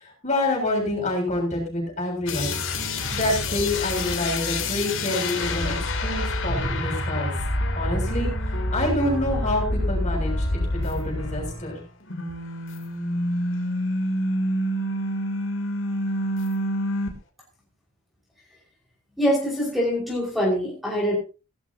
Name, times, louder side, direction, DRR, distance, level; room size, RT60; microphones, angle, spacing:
voice 1, 0.2-2.6 3.1-7.3 7.7-8.3 8.7-11.8, left 1 dB, 35° left, 0 dB, 6.9 m, -27 dB
sound 1, 2.3-11.8 12.1-17.1, left 1 dB, 60° left, 3.0 m, -27 dB
voice 2, 19.2-21.2, equal, ahead, -2 dB, 5.5 m, -24 dB
17.0 x 13.5 x 2.9 m, 0.32 s
head